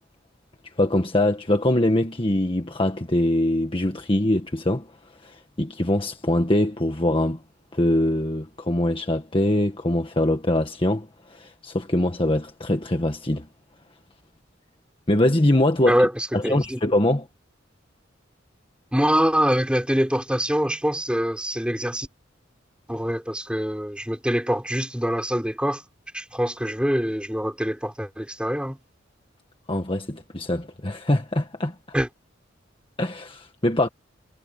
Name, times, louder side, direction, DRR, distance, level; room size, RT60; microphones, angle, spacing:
voice 1, 0.8-4.9 5.2-7.4 7.7-13.5 15.1-16.0 16.3-17.3 29.7-31.7 33.0-33.9, left 1 dB, 30° left, 1.6 m, -23 dB
voice 2, 15.8-16.8 18.9-22.1 22.9-25.8 26.1-28.8 31.9-32.1, equal, 5° right, 6.0 m, -24 dB
head